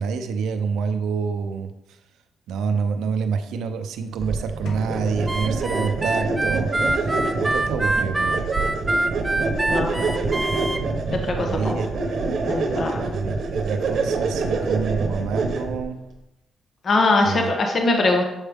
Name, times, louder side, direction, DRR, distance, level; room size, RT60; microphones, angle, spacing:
voice 1, 0.0-1.7 2.5-7.1 7.4-8.5 11.4-11.9 13.1-16.0 17.2-17.5, right 5 dB, 90° right, 7 dB, 0.5 m, -27 dB
sound 1, 4.2-15.9, right 3 dB, 55° right, 0.9 m, -26 dB
sound 2, 4.7-6.5, left 4 dB, 85° left, 1.2 m, -40 dB
Harmonica, 5.3-10.8, right 2 dB, 10° right, 0.3 m, -25 dB
voice 2, 9.7-10.1 11.1-11.8 12.5-13.0 16.8-18.2, left 2 dB, 40° left, 3 dB, 0.9 m, -22 dB
7.2 x 4.7 x 3.5 m, 0.93 s
cardioid pair, 130°, 0 cm